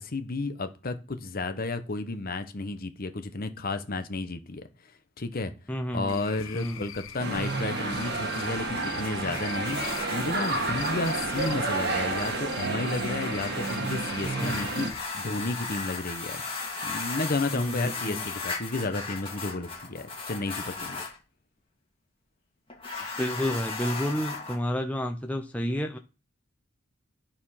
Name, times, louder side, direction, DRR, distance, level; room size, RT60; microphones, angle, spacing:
voice 1, 0.0-4.6 5.2-5.5 5.9-14.9 15.1-16.4 16.8-21.1, left 2 dB, 45° left, 0.9 m, -32 dB
voice 2, 5.7-6.2 6.5-6.8 14.3-14.9 17.5-18.2 23.2-26.0, equal, 5° left, 0.6 m, -30 dB
Cricket / Frog, 6.1-15.0, left 9 dB, 80° left, 0.8 m, -42 dB
sound 1, 7.2-14.9, right 3 dB, 55° right, 1.5 m, -30 dB
sound 2, 8.5-21.2 22.7-24.6, left 3 dB, 25° left, 2.1 m, -37 dB
11.0 x 4.4 x 5.7 m
head